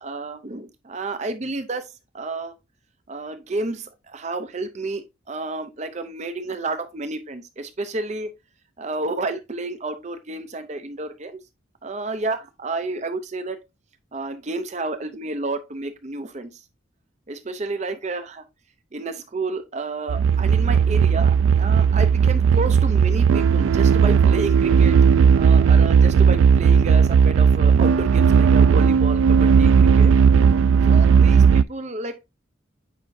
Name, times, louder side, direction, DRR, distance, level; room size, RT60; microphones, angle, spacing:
voice 1, 0.0-1.9 2.1-2.5 3.1-8.3 8.8-11.4 11.8-13.6 14.1-16.5 17.3-18.4 18.9-25.0 25.3-30.1 30.9-32.2, right 2 dB, 35° right, 0.6 m, -30 dB
sound 1, 20.1-31.6, right 6 dB, 80° right, 0.3 m, -16 dB
8.4 x 5.0 x 2.6 m
head